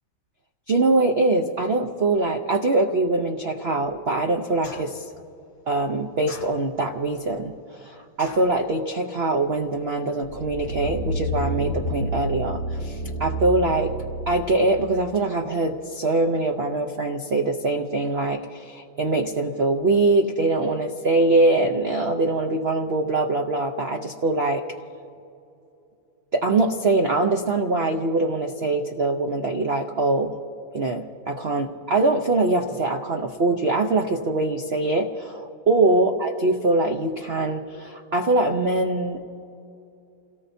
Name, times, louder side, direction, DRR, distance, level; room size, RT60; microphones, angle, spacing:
voice 1, 0.7-5.0 5.7-13.9 14.3-24.6 26.3-30.3 30.7-39.2, right 2 dB, 60° right, 4 dB, 0.6 m, -23 dB
sound 1, 4.6-5.1 6.3-6.9 8.2-8.6, left 2 dB, 60° left, 3.3 m, -41 dB
sound 2, 10.2-14.6 15.1-15.2, right 1 dB, 85° right, 3.4 m, -29 dB
29.5 x 18.0 x 2.7 m, 2.7 s
omnidirectional pair, 2.1 m